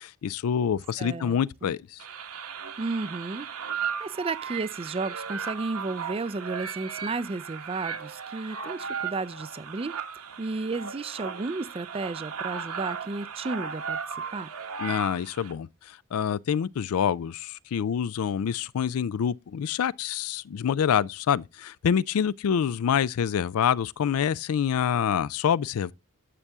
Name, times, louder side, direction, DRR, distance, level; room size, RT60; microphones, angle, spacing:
voice 1, 0.0-2.0 14.8-25.9, left 8 dB, 75° left, 0.4 m, -26 dB
voice 2, 1.0-1.7 2.8-3.5 3.7-9.9 10.4-14.0 14.3-14.5, right 3 dB, 25° right, 0.4 m, -33 dB
sound 1, 2.0-15.5, right 6 dB, 75° right, 1.3 m, -36 dB
9.9 x 6.8 x 3.5 m
head